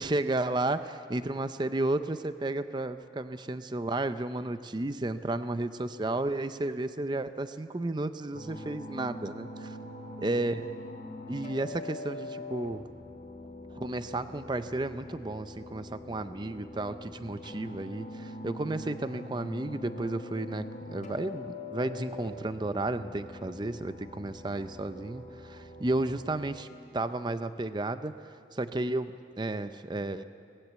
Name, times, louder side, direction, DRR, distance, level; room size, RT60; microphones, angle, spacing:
voice 1, 0.0-9.8 10.2-10.7 11.3-12.8 13.7-26.7 26.9-30.2, right 2 dB, 25° right, 11 dB, 0.5 m, -33 dB
sound 1, 8.3-26.6, left 2 dB, 40° left, 3.0 m, -43 dB
23.0 x 19.5 x 8.1 m, 2.4 s
head